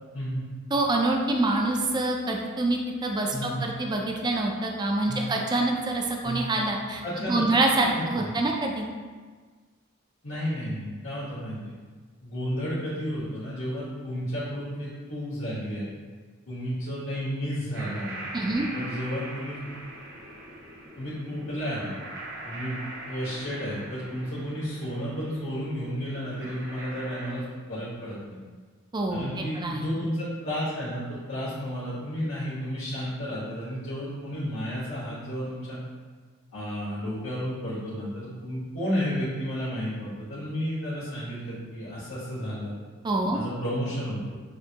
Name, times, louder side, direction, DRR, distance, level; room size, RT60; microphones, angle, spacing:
voice 1, 0.1-0.4 3.3-3.6 5.0-5.3 6.2-6.5 7.0-7.4 7.8-8.3 10.2-11.7 12.2-15.9 16.5-19.6 21.0-21.9 22.4-22.8 23.1-28.4 29.1-35.8 36.5-42.7 43.3-44.4, equal, 80° left, -12 dB, 1.5 m, -32 dB
voice 2, 0.7-7.0 7.3-8.9 18.3-18.7 28.9-29.2 29.5-29.9 43.0-43.4, right 2 dB, 20° right, 1 dB, 0.4 m, -26 dB
sound 1, 17.7-27.3, right 1 dB, 60° right, 0.7 m, -41 dB
6.6 x 2.7 x 2.8 m, 1.5 s
head